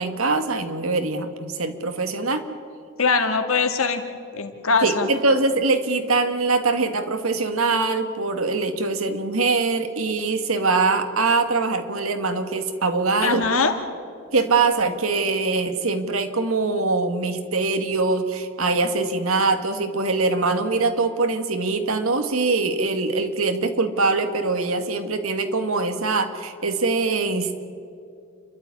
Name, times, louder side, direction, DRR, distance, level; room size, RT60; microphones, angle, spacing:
voice 1, 0.0-2.5 4.8-13.4 14.3-27.6, right 3 dB, 90° right, 7 dB, 2.0 m, -23 dB
voice 2, 3.0-4.0 4.3-5.1 13.2-13.7, left 4 dB, 85° left, 6 dB, 2.2 m, -21 dB
29.5 x 12.5 x 9.9 m, 2.4 s
head